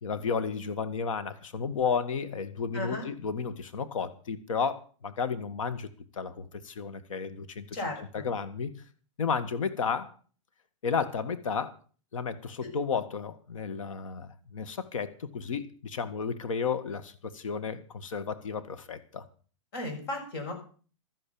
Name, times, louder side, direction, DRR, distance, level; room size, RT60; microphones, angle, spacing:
voice 1, 0.0-8.7 9.2-10.1 10.8-11.8 12.1-19.2, left 6 dB, 80° left, 12 dB, 1.8 m, -33 dB
voice 2, 2.7-3.1 7.7-8.3 19.7-20.5, left 1 dB, 50° left, 3 dB, 6.6 m, -35 dB
13.0 x 10.5 x 7.0 m, 0.41 s
hypercardioid pair, 165°, 17 cm